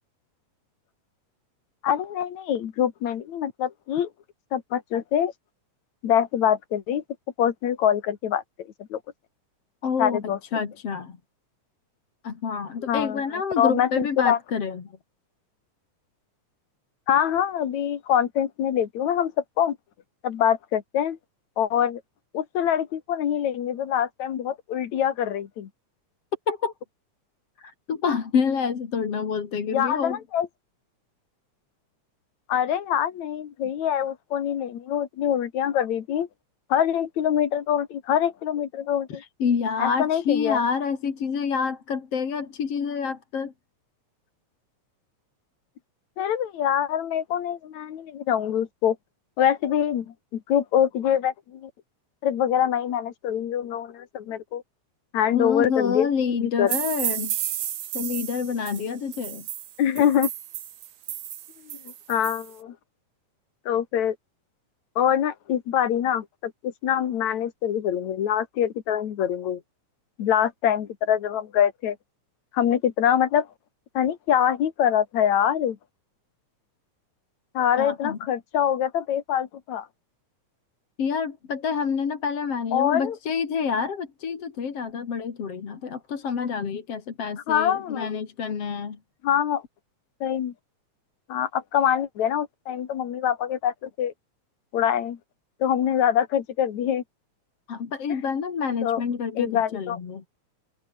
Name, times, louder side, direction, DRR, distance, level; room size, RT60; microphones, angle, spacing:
voice 1, 1.8-4.1 4.5-5.3 6.0-7.0 7.4-9.0 10.0-10.4 12.9-13.2 13.6-14.4 17.1-19.3 19.6-19.8 20.2-21.2 21.6-22.0 22.3-25.7 29.7-30.5 32.5-36.3 36.7-39.2 39.8-40.6 46.2-49.0 49.4-51.7 52.2-54.6 55.1-56.1 56.4-56.7 59.8-60.3 61.6-62.8 63.7-64.2 65.0-69.6 70.2-72.0 72.5-73.5 73.9-75.8 77.5-79.9 82.7-83.2 87.5-88.1 89.2-89.6 90.2-90.5 91.3-94.1 94.7-95.2 95.6-97.0 98.8-99.0 99.4-100.0, left 9 dB, 70° left, 2.9 m, -24 dB
voice 2, 9.8-11.2 12.2-14.8 26.5-26.7 27.6-30.2 39.1-43.5 55.3-57.3 57.9-59.5 77.8-78.2 81.0-89.0 97.7-100.2, left 6 dB, 50° left, 3.5 m, -28 dB
sound 1, 56.7-62.5, right 11 dB, 65° right, 2.6 m, -32 dB
open air
omnidirectional pair, 3.5 m